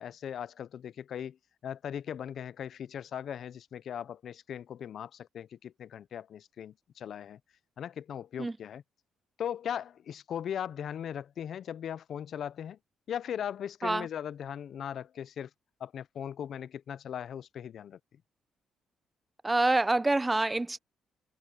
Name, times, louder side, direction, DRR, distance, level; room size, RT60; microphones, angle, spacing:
voice 1, 0.0-1.4 1.6-7.4 7.8-8.8 9.4-12.8 13.1-15.5 15.8-18.0, left 9 dB, 65° left, 0.5 m, -38 dB
voice 2, 19.4-20.8, right 2 dB, 15° right, 0.5 m, -26 dB
cardioid pair, 90°, 0 cm